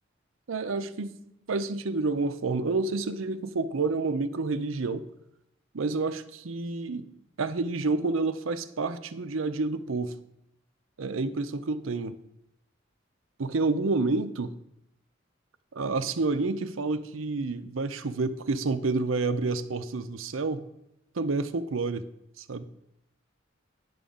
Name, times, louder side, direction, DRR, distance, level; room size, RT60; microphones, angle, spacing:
voice 1, 0.5-1.2 1.5-5.0 5.7-7.1 7.4-10.1 11.0-12.2 13.4-14.5 15.7-20.6 21.2-22.0 22.4-22.6, right 3 dB, 90° right, 11 dB, 0.6 m, -29 dB
10.0 x 3.8 x 7.0 m, 0.83 s
head